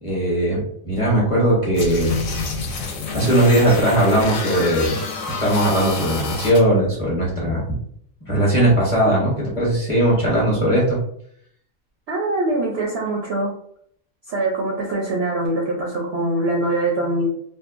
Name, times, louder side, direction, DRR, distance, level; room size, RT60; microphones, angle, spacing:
voice 1, 0.0-2.2 2.6-4.9 5.4-7.6 8.2-11.0, right 1 dB, 30° left, -5 dB, 0.8 m, -19 dB
sound 1, 1.8-6.6, left 4 dB, 70° left, 0.9 m, -28 dB
voice 2, 12.1-13.5 14.3-17.3, right 2 dB, 65° right, -2 dB, 0.6 m, -23 dB
2.7 x 2.2 x 2.4 m, 0.67 s
omnidirectional pair, 1.5 m